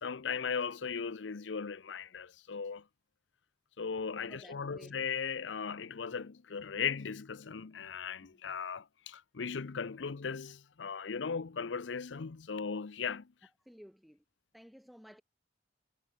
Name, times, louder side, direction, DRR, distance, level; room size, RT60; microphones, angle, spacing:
voice 1, 0.0-2.8 3.8-13.3, left 6 dB, 90° left, 0.6 m, -37 dB
voice 2, 4.3-5.0 8.2-8.4 13.6-14.2 14.5-15.2, equal, ahead, 2.3 m, -55 dB
head